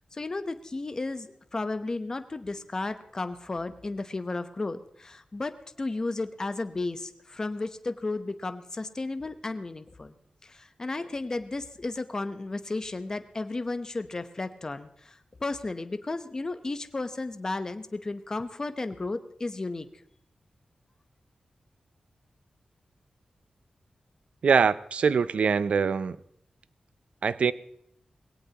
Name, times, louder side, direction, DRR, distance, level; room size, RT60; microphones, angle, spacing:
voice 1, 0.1-5.5 5.8-10.2 10.4-19.9, left 2 dB, 30° left, 9 dB, 0.8 m, -33 dB
voice 2, 24.4-26.2 27.2-27.5, right 5 dB, 70° right, 16 dB, 0.5 m, -23 dB
21.0 x 17.5 x 2.9 m, 0.73 s
wide cardioid pair, 140°, 2 cm